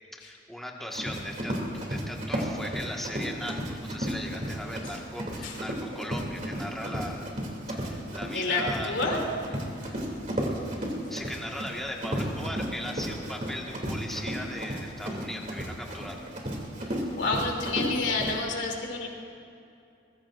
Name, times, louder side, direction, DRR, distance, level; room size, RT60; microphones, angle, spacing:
voice 1, 0.1-7.3 7.7-8.9 11.1-16.3, left 1 dB, ahead, -1 dB, 1.6 m, -38 dB
Run, 0.9-18.3, equal, 40° right, 2.8 m, -33 dB
voice 2, 8.3-9.3 17.2-19.1, left 3 dB, 75° left, 0 dB, 3.0 m, -29 dB
24.0 x 21.0 x 2.6 m, 2.6 s
head